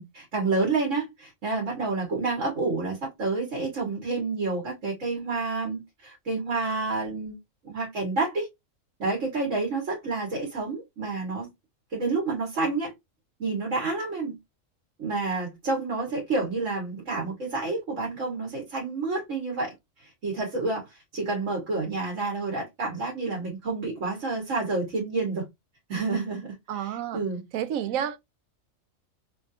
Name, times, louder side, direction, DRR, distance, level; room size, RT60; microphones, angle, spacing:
voice 1, 0.0-7.4 7.6-8.5 9.0-11.5 11.9-12.9 13.4-14.4 15.0-19.7 20.0-25.4 25.9-27.4 27.9-28.0, right 3 dB, 70° right, 1.7 m, -29 dB
voice 2, 26.7-27.2 27.5-28.2, right 9 dB, 85° right, 1.0 m, -30 dB
3.4 x 2.7 x 2.5 m
omnidirectional pair, 1.4 m